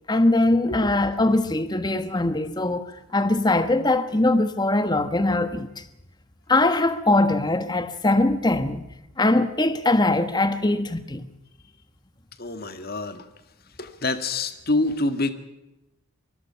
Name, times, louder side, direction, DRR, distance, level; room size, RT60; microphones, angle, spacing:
voice 1, 0.1-5.8 6.5-8.8 9.2-11.3, left 2 dB, 20° left, 1.3 m, -21 dB
voice 2, 12.4-13.3 13.8-15.3, left 2 dB, 45° left, 1.9 m, -26 dB
24.5 x 20.0 x 5.7 m
head